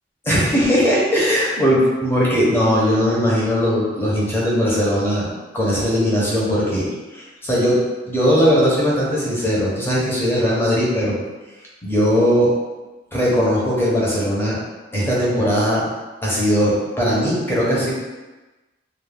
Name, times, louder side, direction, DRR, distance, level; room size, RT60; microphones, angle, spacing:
voice 1, 0.2-5.3 5.5-11.2 11.8-12.5 13.1-14.5 14.9-15.9 16.2-17.9, equal, 10° left, -6 dB, 0.7 m, -19 dB
2.3 x 2.1 x 3.2 m, 1.1 s
head